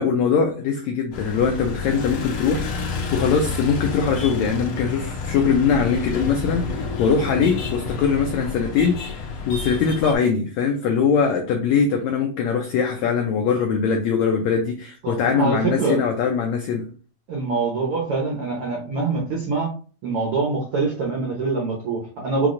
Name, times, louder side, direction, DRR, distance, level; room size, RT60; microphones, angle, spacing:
voice 1, 0.0-16.9, left 6 dB, 85° left, 3 dB, 1.6 m, -22 dB
sound 1, 1.1-10.2, left 4 dB, 70° left, 1.6 m, -29 dB
voice 2, 15.0-16.0 17.3-19.7 20.0-22.5, right 4 dB, 80° right, -2 dB, 1.2 m, -24 dB
5.8 x 3.0 x 2.5 m, 0.39 s
omnidirectional pair, 3.9 m